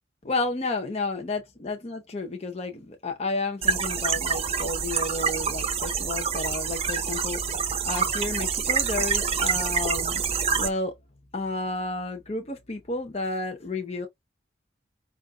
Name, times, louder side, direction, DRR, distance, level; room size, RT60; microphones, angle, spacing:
voice 1, 0.2-7.6 7.8-10.9 11.3-14.1, left 3 dB, 35° left, 0.8 m, -31 dB
sound 1, 3.6-10.7, right 6 dB, 30° right, 0.7 m, -26 dB
5.4 x 2.5 x 3.6 m
head